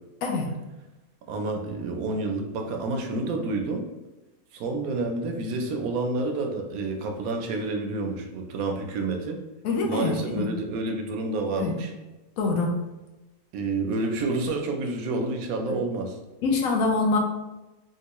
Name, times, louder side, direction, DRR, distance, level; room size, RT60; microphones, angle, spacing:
voice 1, 0.2-0.5 9.6-10.5 11.6-11.8 12.4-12.8 15.7-15.8 16.4-17.2, left 3 dB, 75° left, 1 dB, 1.0 m, -25 dB
voice 2, 1.3-3.9 4.5-9.4 9.8-11.9 13.5-16.2, right 3 dB, 75° right, 3 dB, 1.0 m, -29 dB
3.6 x 2.7 x 2.9 m, 1.1 s
omnidirectional pair, 1.6 m